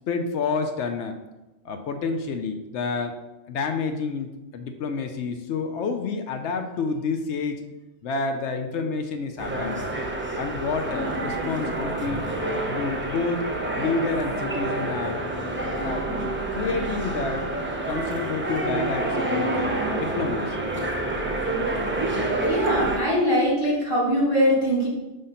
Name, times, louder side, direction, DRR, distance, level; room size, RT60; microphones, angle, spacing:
voice 1, 0.1-1.2 1.6-3.2 3.5-7.6 8.0-9.9 10.4-12.2 12.6-13.4 13.7-15.2 15.8-16.3 16.6-17.5 17.9-20.7, left 4 dB, 80° left, 6 dB, 0.9 m, -29 dB
sound 1, 9.4-23.0, right 2 dB, 15° right, 0.4 m, -28 dB
voice 2, 22.5-24.9, equal, 30° left, -7 dB, 2.3 m, -22 dB
5.5 x 3.4 x 5.5 m, 1.0 s
omnidirectional pair, 1.2 m